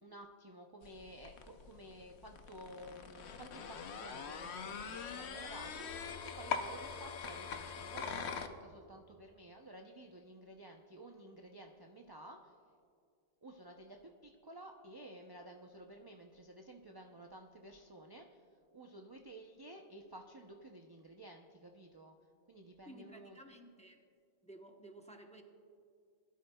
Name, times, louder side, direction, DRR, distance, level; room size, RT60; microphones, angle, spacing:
voice 1, 0.0-12.5 13.4-18.4 18.7-22.1 22.5-23.4, right 1 dB, 35° right, 2 dB, 0.4 m, -53 dB
sound 1, 0.8-8.5, left 6 dB, 60° left, 0.9 m, -43 dB
voice 2, 22.9-24.0 24.4-25.4, right 1 dB, 5° left, 2 dB, 0.7 m, -54 dB
20.5 x 12.0 x 2.3 m, 2.3 s
omnidirectional pair, 1.3 m